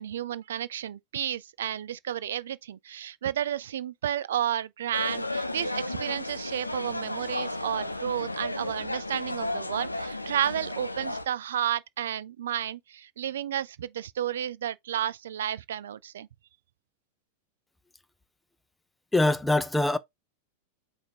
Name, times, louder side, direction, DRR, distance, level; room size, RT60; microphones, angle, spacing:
voice 1, 0.0-16.3, right 10 dB, 60° right, 0.3 m, -32 dB
sound 1, 4.9-11.3, left 2 dB, 85° left, 0.4 m, -33 dB
voice 2, 19.1-20.0, left 2 dB, 5° left, 0.4 m, -23 dB
4.9 x 2.4 x 4.4 m
figure-of-eight pair, 90°, 0 cm